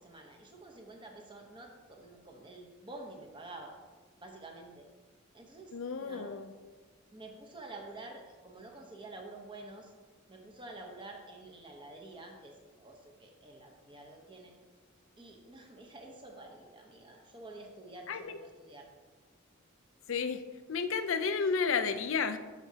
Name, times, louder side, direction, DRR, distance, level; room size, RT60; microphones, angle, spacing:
voice 1, 0.0-3.7 4.2-4.9 5.3-5.7 6.0-6.3 7.1-9.9 10.3-14.5 15.2-18.9, right 2 dB, 25° right, 2 dB, 1.0 m, -49 dB
voice 2, 5.7-6.5 18.1-18.4 20.1-20.4 20.7-22.4, left 5 dB, 75° left, 10 dB, 0.5 m, -32 dB
12.0 x 5.9 x 2.8 m, 1.4 s
head